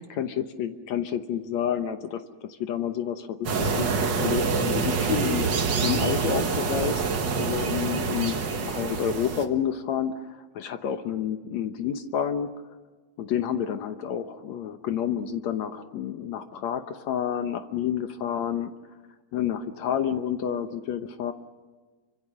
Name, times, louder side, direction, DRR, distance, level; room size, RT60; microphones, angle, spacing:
voice 1, 0.0-5.5 5.8-7.0 7.4-12.5 13.2-18.7 19.3-21.3, left 9 dB, 65° left, 8 dB, 2.0 m, -29 dB
sound 1, 3.4-9.4, right 5 dB, 45° right, 1.6 m, -26 dB
28.0 x 25.0 x 6.2 m, 1.3 s
omnidirectional pair, 3.8 m